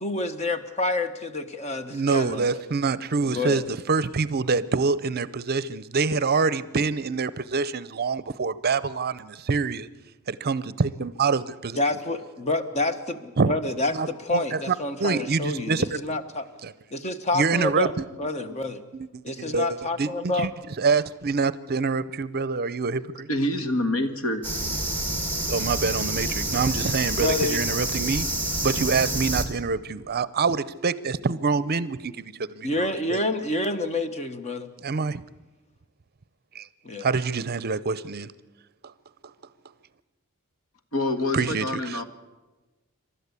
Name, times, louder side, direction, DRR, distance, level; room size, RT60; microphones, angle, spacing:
voice 1, 0.0-2.6 3.2-3.6 11.8-16.5 16.9-17.9 18.2-18.8 19.2-20.5 27.2-27.6 32.6-34.7 36.8-37.1, left 2 dB, 30° left, 9 dB, 1.3 m, -28 dB
voice 2, 1.9-9.9 10.3-11.8 13.4-13.5 13.9-14.1 14.3-14.7 15.0-15.9 16.6-16.7 17.3-18.0 18.9-20.5 20.8-23.3 25.5-28.3 28.6-33.2 34.8-35.2 36.5-36.7 37.0-38.3 41.3-42.0, right 4 dB, 45° right, 17 dB, 0.6 m, -26 dB
voice 3, 23.3-24.4 40.9-42.0, left 1 dB, 70° left, 8 dB, 1.8 m, -26 dB
sound 1, 24.4-29.4, right 1 dB, 10° left, 2.6 m, -28 dB
27.5 x 12.5 x 8.3 m, 1.1 s
head